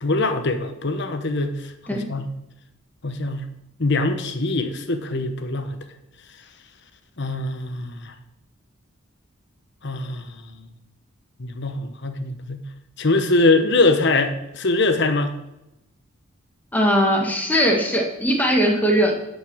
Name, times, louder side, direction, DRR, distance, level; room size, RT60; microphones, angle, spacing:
voice 1, 0.0-1.6 1.9-2.3 3.0-3.5 3.8-5.8 7.2-8.1 9.8-10.3 11.4-12.6 13.0-15.3, left 2 dB, 60° left, 8 dB, 1.0 m, -22 dB
voice 2, 16.7-19.2, equal, 10° left, 0 dB, 1.6 m, -19 dB
11.0 x 5.4 x 6.2 m, 0.90 s
head